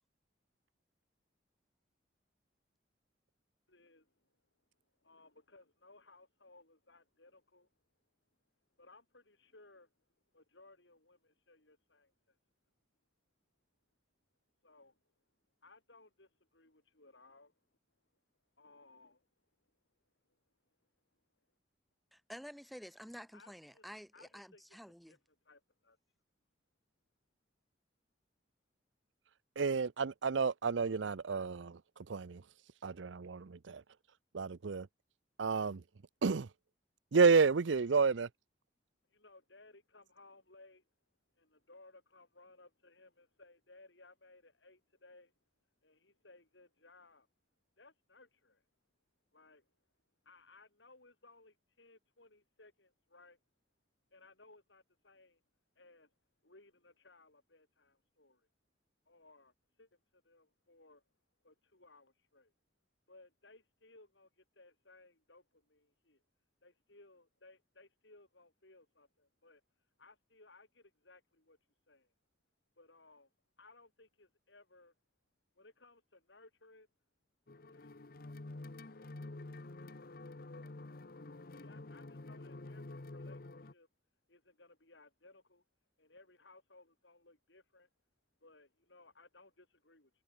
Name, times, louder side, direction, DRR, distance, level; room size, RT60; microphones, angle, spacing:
voice 1, 3.7-4.2 5.0-7.7 8.8-9.9 10.3-12.3 14.6-15.0 15.6-17.5 18.6-19.3 23.3-23.8 24.1-24.8 25.1-25.2 25.4-26.0 39.1-40.8 41.4-45.3 45.8-47.3 47.8-48.6 49.3-49.7 50.2-53.4 54.1-55.4 55.8-56.1 56.4-58.5 59.1-59.5 59.8-61.0 61.4-62.5 63.1-66.2 66.6-69.6 70.0-71.6 71.9-72.1 72.8-73.3 73.6-74.9 75.5-76.9 77.7-78.0 81.5-83.4 83.7-83.9 84.3-85.6 86.0-87.9 88.4-90.1, left 2 dB, 75° left, 6.5 m, -62 dB
voice 2, 22.1-25.2, equal, ahead, 4.6 m, -50 dB
voice 3, 29.6-31.8 32.1-32.4 32.8-33.8 34.3-34.9 35.4-35.8 36.2-36.5 37.1-38.3, right 5 dB, 80° right, 0.6 m, -30 dB
sound 1, 77.5-83.7, left 2 dB, 50° left, 1.0 m, -48 dB
head